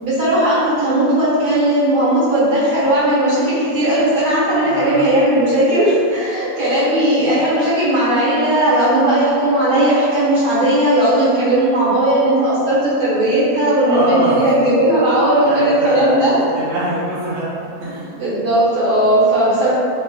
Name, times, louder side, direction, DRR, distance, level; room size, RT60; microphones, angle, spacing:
voice 1, 0.0-16.3 18.1-19.7, right 1 dB, 60° right, -11 dB, 1.6 m, -16 dB
voice 2, 4.6-5.0 13.8-14.4 15.3-16.2 16.5-17.5 17.8-18.1, right 1 dB, 75° right, -9 dB, 1.7 m, -23 dB
3.6 x 2.9 x 2.2 m, 2.4 s
omnidirectional pair, 2.1 m